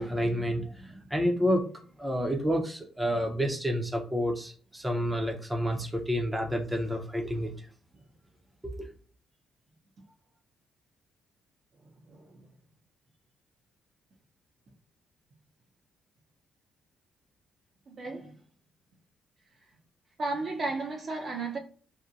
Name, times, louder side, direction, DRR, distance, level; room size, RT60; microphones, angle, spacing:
voice 1, 0.0-7.5 8.6-8.9, equal, 10° right, 0.6 m, -29 dB
voice 2, 12.1-12.5 17.9-18.4 20.2-21.6, right 3 dB, 50° right, 0.6 m, -34 dB
2.7 x 2.1 x 2.5 m
cardioid pair, 80°, 0 cm